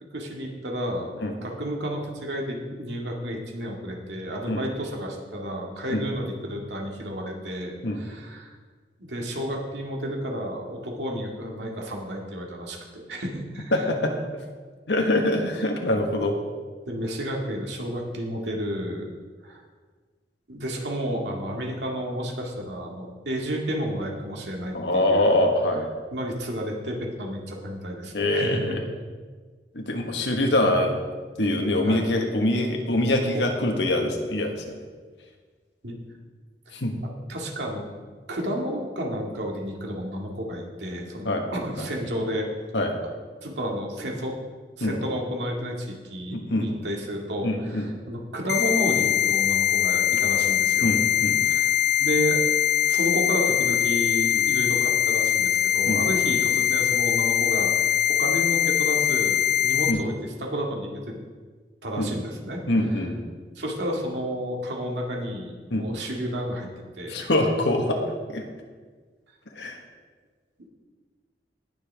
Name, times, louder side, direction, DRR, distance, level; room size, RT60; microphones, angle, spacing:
voice 1, 0.1-8.5 9.0-13.8 16.9-19.1 19.4-19.6 20.5-25.4 26.1-28.8 31.8-32.0 33.3-33.4 35.8-35.9 37.3-37.8 38.3-42.5 43.4-44.3 44.8-50.9 51.4-51.7 52.0-52.4 52.9-61.1 61.8-62.6 63.6-66.7 67.0-67.3, equal, 80° right, 0 dB, 2.1 m, -31 dB
voice 2, 13.7-14.1 14.9-16.4 24.7-25.9 28.1-28.8 29.7-31.0 31.4-34.8 36.7-36.9 41.2-41.4 41.8-41.9 42.7-42.9 44.8-45.0 46.3-46.7 47.4-47.9 50.8-51.4 54.3-54.5 55.8-56.0 59.9-60.0 62.0-62.1 62.7-63.2 65.7-65.9 67.1-68.4 69.5-69.8, left 1 dB, 80° left, 2 dB, 1.4 m, -24 dB
sound 1, 48.5-59.9, left 10 dB, 60° left, 0.6 m, -22 dB
18.5 x 7.0 x 3.5 m, 1.5 s
head